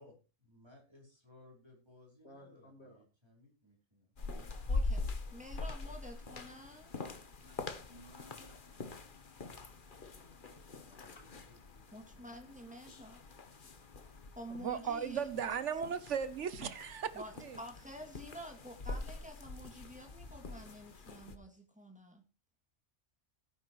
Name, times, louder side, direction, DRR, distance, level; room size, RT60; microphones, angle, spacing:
voice 1, 0.0-4.1 9.9-12.6, left 2 dB, 20° right, 4.8 m, -62 dB
voice 2, 2.2-3.0 7.4-8.9 11.0-11.3, equal, 65° left, 3.9 m, -58 dB
sound 1, 4.2-21.3, left 3 dB, 45° left, 1.3 m, -43 dB
voice 3, 4.7-5.0 5.3-6.9 11.9-13.2 14.4-15.3 17.1-17.3 17.6-22.2, equal, 5° right, 2.6 m, -49 dB
voice 4, 14.6-17.6, right 7 dB, 80° right, 1.2 m, -37 dB
17.0 x 9.8 x 3.1 m
omnidirectional pair, 1.2 m